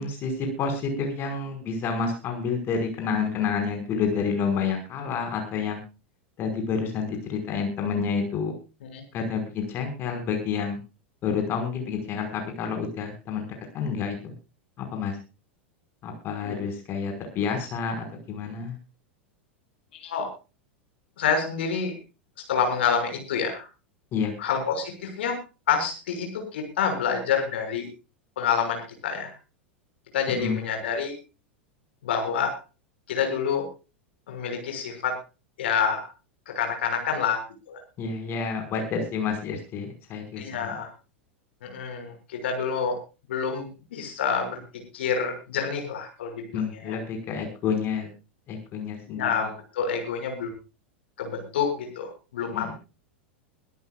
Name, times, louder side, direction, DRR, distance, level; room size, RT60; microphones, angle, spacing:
voice 1, 0.0-5.8 6.4-8.5 9.1-10.8 11.2-13.5 13.7-14.3 14.8-15.2 16.0-18.8 24.1-24.3 30.3-30.6 38.0-40.7 46.5-48.1 48.5-49.5 52.5-52.7, left 5 dB, 35° left, 5 dB, 5.3 m, -29 dB
voice 2, 21.2-21.9 22.5-23.7 24.4-25.4 25.7-27.9 28.4-29.3 30.1-31.1 32.0-32.6 33.1-33.7 34.3-35.1 35.6-36.0 36.5-37.4 37.7-37.8 40.4-40.9 41.6-43.0 43.3-44.6 44.9-47.0 49.1-50.5 51.2-52.7, left 6 dB, 65° left, 4 dB, 6.2 m, -27 dB
23.0 x 13.5 x 2.4 m, 0.31 s
figure-of-eight pair, 90°, 6 cm